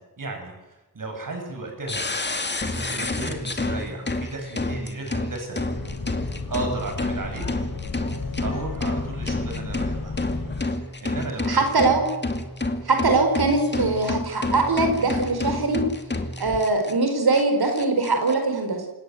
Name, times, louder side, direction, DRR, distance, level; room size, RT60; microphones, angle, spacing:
voice 1, 0.2-0.5 0.9-2.1 2.7-5.6 6.5-7.4 8.4-10.1 11.0-11.6, right 2 dB, 55° right, 3 dB, 7.6 m, -34 dB
sound 1, 1.9-16.9 17.3-17.4 17.7-18.3, left 2 dB, 30° left, 2.4 m, -29 dB
sound 2, 5.7-10.6, left 4 dB, 60° left, 6.4 m, -33 dB
voice 2, 11.5-12.1 12.8-15.8 16.4-18.8, right 3 dB, 80° right, 5 dB, 4.9 m, -22 dB
28.5 x 17.5 x 8.0 m, 1.1 s
wide cardioid pair, 130°, 37 cm